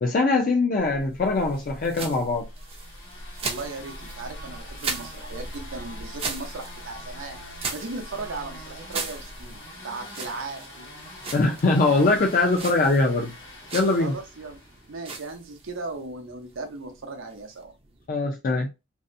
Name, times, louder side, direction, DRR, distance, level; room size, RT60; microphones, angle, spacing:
voice 1, 0.0-2.5 11.3-13.3 13.7-14.2 18.1-18.7, left 3 dB, 45° left, 0.4 m, -22 dB
sound 1, 0.8-18.1, right 3 dB, 30° right, 0.4 m, -39 dB
sound 2, 2.3-15.2, left 1 dB, 65° left, 1.1 m, -44 dB
voice 2, 3.4-7.4 7.7-10.9 14.0-14.6 14.9-17.7, right 3 dB, 85° right, 0.6 m, -37 dB
2.7 x 2.0 x 2.5 m
head